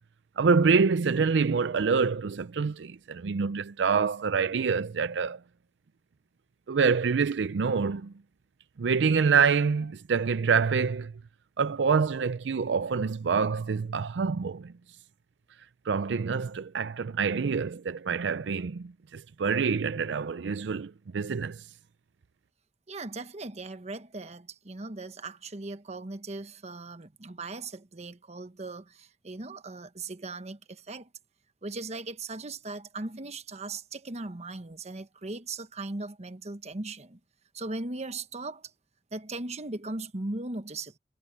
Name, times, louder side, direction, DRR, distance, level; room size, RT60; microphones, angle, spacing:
voice 1, 0.4-5.4 6.7-8.1 8.8-11.1 11.6-14.7 15.9-21.6, right 5 dB, 80° right, 0.5 m, -26 dB
voice 2, 22.9-31.1 31.6-37.2 37.5-38.7 39.1-41.0, right 2 dB, 40° right, 1.1 m, -38 dB
head